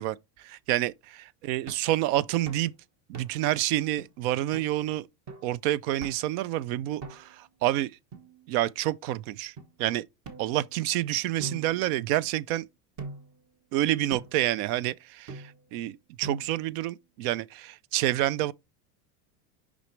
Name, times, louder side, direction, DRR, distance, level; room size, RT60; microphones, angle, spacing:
voice 1, 0.0-2.7 3.1-5.1 5.4-7.9 8.5-9.5 9.8-10.0 10.4-12.7 13.7-18.5, right 14 dB, 60° right, 0.5 m, -28 dB
sound 1, 1.7-1.9 2.5-2.7 3.1-3.5 4.0-4.1 4.5-4.7 5.3-5.5 6.0-6.4 7.0-7.5 8.1-8.8 9.6-9.7 10.2-10.9 11.4-12.4 13.0-13.4 14.1-14.5 15.3-15.7 16.2-16.7, right 4 dB, 35° right, 1.3 m, -43 dB
6.1 x 5.2 x 3.2 m
supercardioid pair, 125°, 49 cm